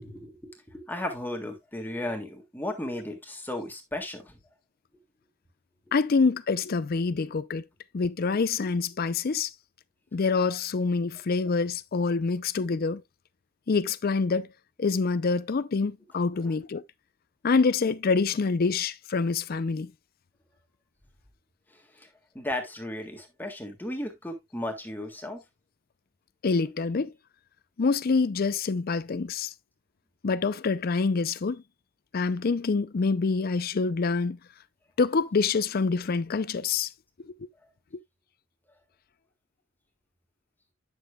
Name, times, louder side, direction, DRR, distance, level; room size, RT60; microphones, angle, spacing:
voice 1, 0.0-4.4 16.3-16.5 21.7-22.1 22.3-25.4, left 1 dB, 10° left, 1.7 m, -35 dB
voice 2, 5.9-7.6 7.9-9.5 10.1-13.0 13.7-14.5 14.8-16.8 17.4-19.9 26.4-27.1 27.8-29.5 30.2-31.6 32.1-34.4 35.0-36.9 37.2-37.3, left 4 dB, 45° left, 0.5 m, -26 dB
9.9 x 6.9 x 2.3 m
head